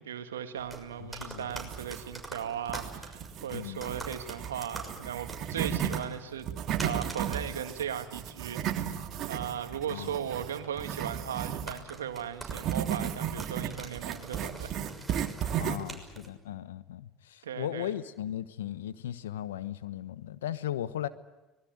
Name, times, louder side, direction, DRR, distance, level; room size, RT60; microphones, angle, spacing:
voice 1, 0.0-6.5 6.8-14.8 17.4-17.9, right 9 dB, 90° right, 8 dB, 1.9 m, -37 dB
sound 1, 0.6-16.3, right 2 dB, 5° right, 6.4 m, -46 dB
voice 2, 1.0-1.5 3.5-3.9 9.9-10.2 15.6-21.1, left 11 dB, 85° left, 14 dB, 1.1 m, -37 dB
sound 2, 1.5-2.3 2.7-6.0 6.4-11.8 12.5-15.9, right 9 dB, 55° right, 2.2 m, -34 dB
25.0 x 20.5 x 9.4 m, 1.1 s
hypercardioid pair, 75°, 0 cm